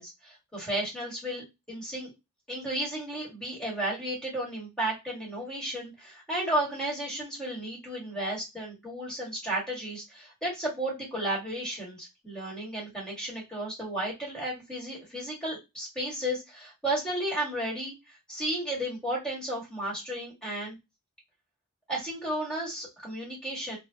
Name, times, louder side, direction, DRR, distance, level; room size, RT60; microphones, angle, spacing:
voice 1, 0.0-2.1 2.5-17.9 18.3-20.8 21.9-23.8, right 1 dB, 5° left, -4 dB, 1.5 m, -33 dB
3.3 x 2.1 x 2.7 m, 0.22 s
head